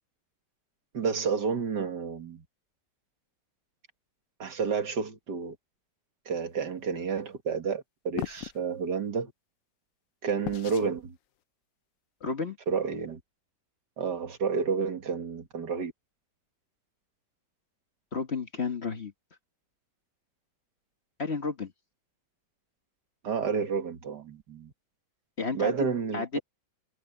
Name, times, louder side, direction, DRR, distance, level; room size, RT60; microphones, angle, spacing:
voice 1, 0.9-2.4 4.4-5.6 6.3-9.3 10.2-11.2 12.7-13.2 14.0-15.9 23.2-24.7 25.5-26.4, right 5 dB, 70° right, 2.4 m, -30 dB
sound 1, 8.2-8.6 10.4-10.9, left 13 dB, 70° left, 0.8 m, -36 dB
voice 2, 12.2-12.6 18.1-19.1 21.2-21.7 25.4-25.9 26.1-26.4, left 4 dB, 40° left, 1.6 m, -31 dB
omnidirectional pair, 1.9 m